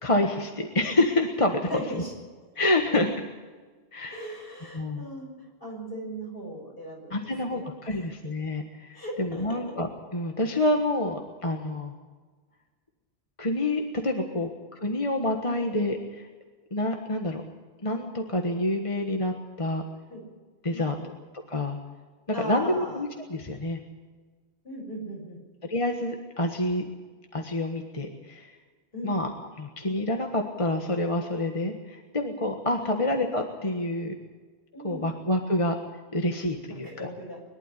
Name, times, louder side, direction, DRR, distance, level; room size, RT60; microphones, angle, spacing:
voice 1, 0.0-1.6 2.6-3.1 3.9-4.2 4.7-5.0 7.1-11.9 13.4-14.5 14.8-16.3 16.7-17.4 17.8-19.8 20.6-20.9 21.5-21.8 22.4-23.8 25.7-26.8 27.3-28.6 29.0-29.3 29.6-34.1 34.8-35.7 36.1-36.9, left 1 dB, 30° left, 3 dB, 1.5 m, -27 dB
voice 2, 1.7-2.1 4.1-8.1 8.9-9.6 14.3-14.5 15.5-15.6 20.1-20.2 20.7-21.1 22.3-23.0 24.6-25.4 28.9-29.2 32.8-33.0 34.7-35.1 36.7-37.4, right 1 dB, 60° left, -2 dB, 6.9 m, -38 dB
22.5 x 12.0 x 9.9 m, 1.4 s
omnidirectional pair, 1.1 m